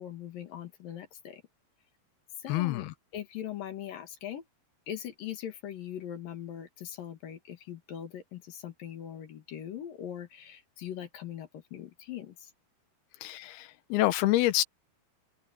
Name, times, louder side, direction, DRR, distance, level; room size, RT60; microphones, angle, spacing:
voice 1, 0.0-1.4 2.4-2.8 3.1-4.4 4.9-12.5, left 10 dB, 65° left, 3.4 m, -41 dB
voice 2, 2.5-2.9 13.2-14.6, left 16 dB, 80° left, 2.9 m, -27 dB
omnidirectional pair, 4.5 m